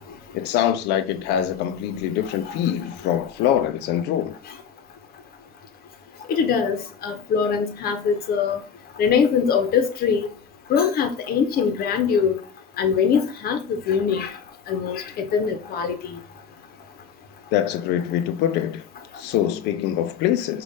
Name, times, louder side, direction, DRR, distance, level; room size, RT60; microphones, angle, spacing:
voice 1, 0.3-4.4 17.5-18.8 19.2-20.6, left 11 dB, 90° left, 0.5 m, -24 dB
voice 2, 2.2-2.6 4.5-4.6 6.3-8.6 9.0-10.3 10.7-12.4 12.8-14.4 14.7-16.2, left 6 dB, 65° left, 0.9 m, -23 dB
5.1 x 2.5 x 3.5 m
cardioid pair, 110°, 17 cm